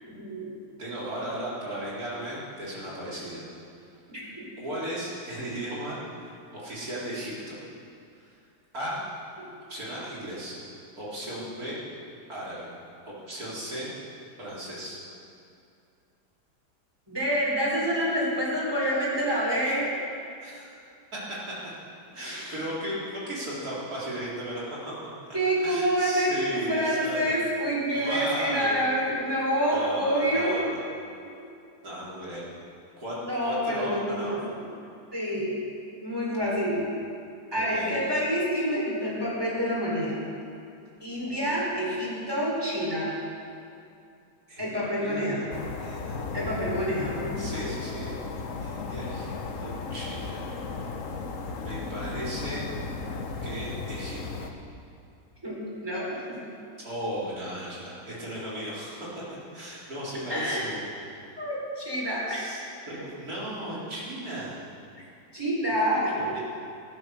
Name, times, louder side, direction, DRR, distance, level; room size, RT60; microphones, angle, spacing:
voice 1, 0.0-0.6 4.1-4.4 17.1-19.9 22.2-22.6 25.3-30.6 33.2-34.6 35.1-35.6 36.0-36.8 37.5-40.2 41.0-43.1 44.6-45.4 46.3-47.5 55.4-56.4 60.3-60.6 61.4-62.6 65.3-66.4, equal, 15° right, -5 dB, 4.4 m, -27 dB
voice 2, 0.8-3.4 4.6-7.6 8.1-8.3 8.7-9.0 9.7-10.6 11.0-11.8 12.3-12.7 13.1-13.9 14.4-15.0 20.4-20.7 22.1-25.0 25.6-27.4 27.9-28.8 29.7-30.8 31.8-32.4 33.0-33.2 33.4-34.4 36.3-36.6 37.5-37.9 41.3-41.5 44.5-46.2 47.4-48.1 48.6-50.5 51.5-52.7 53.4-54.5 56.8-59.1 59.5-60.8 62.3-62.6 62.9-64.6 65.9-66.4, right 1 dB, 60° right, -7 dB, 4.5 m, -36 dB
sound 1, 45.5-54.5, left 4 dB, 55° left, 1.3 m, -35 dB
14.0 x 12.5 x 6.5 m, 2.5 s
omnidirectional pair, 1.8 m